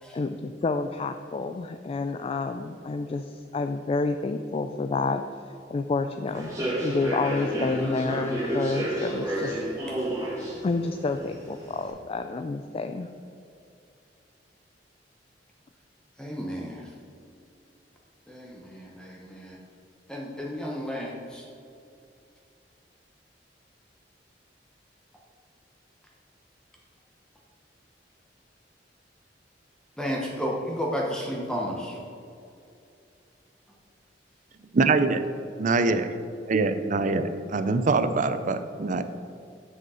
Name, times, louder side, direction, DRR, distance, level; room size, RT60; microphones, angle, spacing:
voice 1, 0.1-5.2 5.7-6.6 6.8-9.6 10.6-13.1, left 3 dB, 35° left, 8 dB, 0.3 m, -29 dB
Human voice / Subway metro underground, 6.3-11.9, right 1 dB, 20° right, 2.2 m, -31 dB
voice 2, 16.2-16.8 18.3-19.6 20.1-21.4 30.0-32.0, equal, 5° left, -2 dB, 0.9 m, -32 dB
voice 3, 34.7-35.2 35.6-36.0 36.5-39.0, right 3 dB, 45° right, 11 dB, 0.5 m, -24 dB
7.9 x 6.2 x 5.5 m, 2.5 s
head